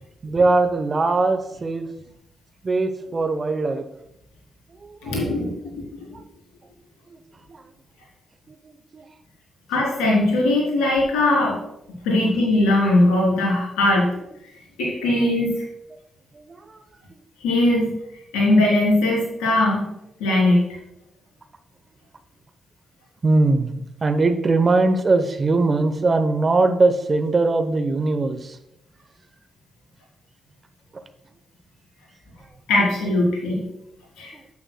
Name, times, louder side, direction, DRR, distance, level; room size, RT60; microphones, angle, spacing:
voice 1, 0.0-1.9 2.6-3.9 4.8-5.3 6.1-6.2 7.5-7.6 8.5-9.1 12.2-12.3 15.0-15.3 16.3-16.8 23.2-28.6 30.9-31.0, right 3 dB, 40° right, 10 dB, 0.8 m, -21 dB
voice 2, 5.0-5.5 9.7-11.6 12.0-14.1 14.8-15.5 17.4-17.9 18.3-19.9 20.2-20.6 32.7-33.6 34.2-34.3, left 1 dB, 85° left, -3 dB, 3.3 m, -19 dB
9.5 x 8.8 x 2.3 m, 0.84 s
supercardioid pair, 50°, 0 cm